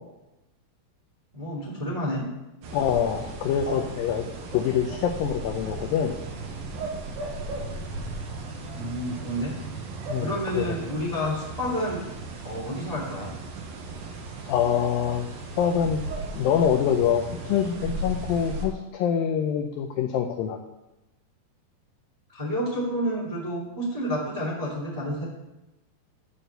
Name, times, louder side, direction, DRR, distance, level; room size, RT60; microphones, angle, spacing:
voice 1, 1.3-2.2 8.7-9.5 10.2-12.0 12.4-13.3 22.3-25.2, equal, 15° right, -4 dB, 1.3 m, -29 dB
sound 1, 2.6-18.7, right 2 dB, 65° right, 2.9 m, -36 dB
voice 2, 2.7-4.2 4.5-6.2 10.1-10.8 14.5-15.3 15.6-16.0 16.4-20.6, left 8 dB, 85° left, 5 dB, 2.0 m, -25 dB
11.5 x 4.2 x 7.9 m, 0.97 s
omnidirectional pair, 4.9 m